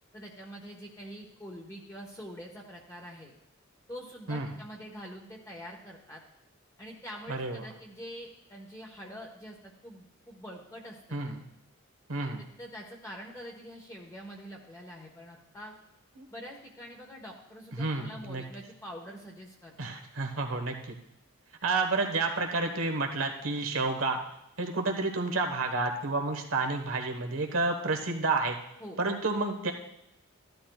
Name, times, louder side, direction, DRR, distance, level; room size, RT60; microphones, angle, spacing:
voice 1, 0.1-3.3 3.9-6.2 6.8-11.2 12.6-15.7 16.3-19.7 28.8-29.0, equal, 15° left, -1 dB, 1.2 m, -45 dB
voice 2, 7.3-7.6 11.1-11.4 12.1-12.4 16.2-16.3 17.7-18.4 19.8-20.9 21.6-24.2 24.6-28.6 29.0-29.7, right 3 dB, 85° right, 4 dB, 1.3 m, -30 dB
15.0 x 11.5 x 2.4 m, 0.85 s
head